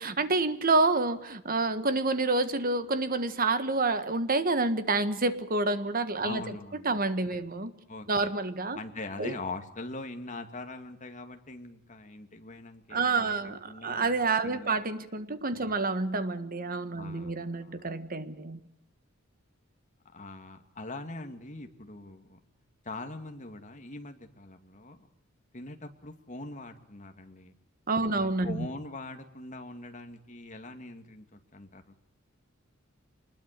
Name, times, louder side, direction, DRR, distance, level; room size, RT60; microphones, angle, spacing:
voice 1, 0.0-6.4 6.9-7.7 8.1-8.8 9.2-9.3 12.9-18.6 27.9-28.7, right 3 dB, 45° right, 11 dB, 1.6 m, -28 dB
voice 2, 6.2-7.0 7.3-7.4 7.9-8.3 8.7-14.8 15.5-15.8 17.0-17.9 20.1-22.4 22.8-25.1 25.5-27.5 28.1-32.0, left 2 dB, 35° left, 5 dB, 2.3 m, -42 dB
25.5 x 21.0 x 6.8 m, 0.78 s
head